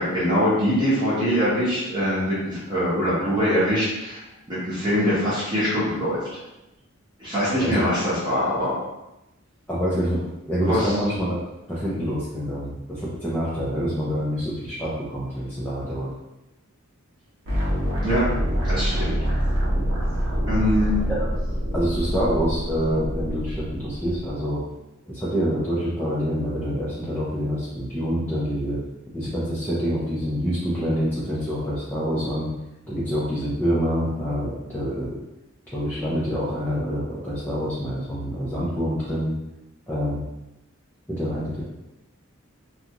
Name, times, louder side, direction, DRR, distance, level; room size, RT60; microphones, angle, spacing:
voice 1, 0.0-4.2 4.5-6.2 7.2-8.7 10.6-10.9 18.0-18.2 18.6-19.2 20.5-21.0, equal, 20° right, -11 dB, 0.9 m, -23 dB
voice 2, 9.7-10.2 10.5-11.4 11.7-16.1 21.2-21.3 21.7-24.6 25.1-28.8 29.1-32.5 32.9-35.1 35.7-39.3 39.9-40.2 41.1-41.6, equal, 10° left, -9 dB, 0.4 m, -26 dB
sound 1, 17.5-24.3, equal, 75° right, 0.8 m, -25 dB
2.5 x 2.3 x 2.8 m, 0.95 s
head